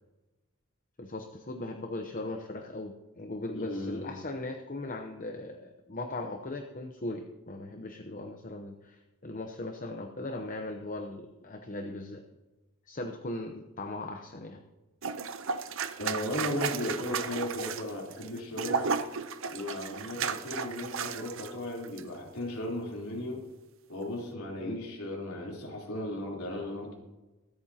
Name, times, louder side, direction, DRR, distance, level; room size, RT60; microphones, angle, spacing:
voice 1, 1.0-12.2 12.9-14.6 24.6-24.8, left 2 dB, 40° left, 4 dB, 0.8 m, -39 dB
voice 2, 3.5-4.1 16.0-18.9 19.5-23.4 23.9-26.9, left 1 dB, 80° left, -2 dB, 3.5 m, -36 dB
sound 1, 15.0-21.5 21.8-22.0, right 6 dB, 60° right, 0.6 m, -34 dB
24.0 x 8.7 x 2.9 m, 1.1 s
head